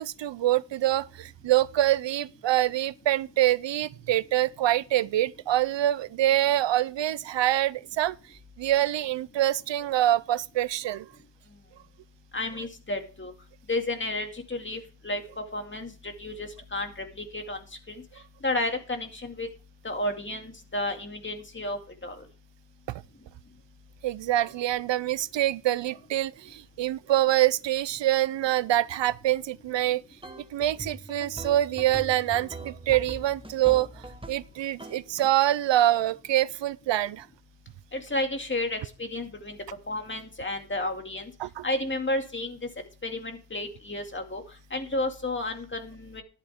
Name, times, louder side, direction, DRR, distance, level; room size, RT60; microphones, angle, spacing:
voice 1, 0.0-11.1 24.0-30.0 30.5-37.3 41.4-41.6, right 13 dB, 70° right, 0.5 m, -25 dB
voice 2, 12.3-13.3 13.7-17.6 17.9-18.0 18.4-19.5 19.8-22.2 37.9-39.6 39.9-41.3 41.6-42.6 43.0-44.4 44.7-46.2, left 2 dB, 25° left, 2.2 m, -32 dB
sound 1, 30.2-34.5 34.8-35.3, right 2 dB, 10° right, 1.2 m, -41 dB
12.5 x 11.0 x 3.6 m
wide cardioid pair, 110°, 46 cm